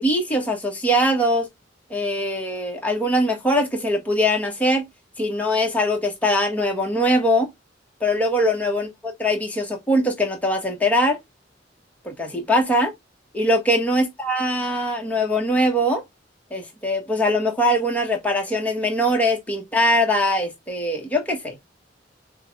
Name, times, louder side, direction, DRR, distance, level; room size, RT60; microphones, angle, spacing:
voice 1, 0.0-1.5 1.9-4.9 5.2-7.5 8.0-11.2 12.0-12.9 13.3-16.0 16.5-21.6, equal, 10° left, 1.4 m, -22 dB
5.9 x 2.4 x 3.4 m
head